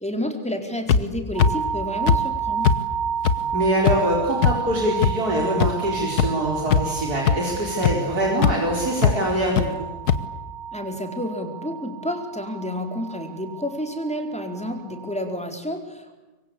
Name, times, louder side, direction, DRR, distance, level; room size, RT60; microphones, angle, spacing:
voice 1, 0.0-2.7 10.7-16.1, left 1 dB, 5° left, 4 dB, 4.4 m, -30 dB
sound 1, 0.9-1.0 1.4-1.5 2.1-2.2 2.6-2.8 3.3-3.4 3.9-4.0 4.4-4.5 5.0-5.1 5.6-5.7 6.2-6.3 6.7-7.0 7.3-7.4 7.8-7.9 8.4-8.5 9.0-9.1 9.6-9.7 10.1-10.2, left 7 dB, 85° left, 1.7 m, -17 dB
sound 2, 1.3-15.4, right 8 dB, 30° right, 4.0 m, -31 dB
voice 2, 3.5-9.9, equal, 80° right, -1 dB, 4.9 m, -24 dB
25.5 x 23.5 x 8.6 m, 1.1 s
omnidirectional pair, 1.6 m